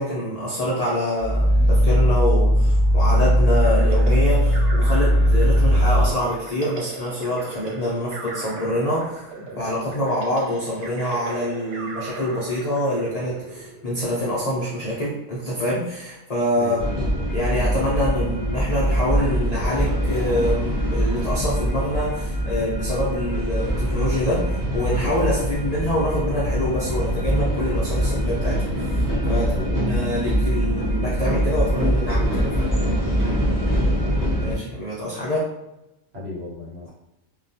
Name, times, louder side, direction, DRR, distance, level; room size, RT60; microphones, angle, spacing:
voice 1, 0.0-9.0 9.6-16.8 17.3-24.4 24.7-28.6 28.9-29.5 29.7-32.7 34.4-35.4, left 1 dB, 60° left, -7 dB, 0.4 m, -25 dB
Growling, 1.2-6.2, equal, ahead, 1.3 m, -17 dB
sound 1, 3.6-14.2, right 3 dB, 80° right, 1.0 m, -38 dB
voice 2, 16.5-17.4 29.3-30.1 33.7-34.5 36.1-36.9, left 2 dB, 55° right, -6 dB, 1.1 m, -36 dB
sound 2, 16.8-34.5, equal, 20° right, 0.6 m, -23 dB
2.3 x 2.2 x 2.6 m, 0.92 s
omnidirectional pair, 1.4 m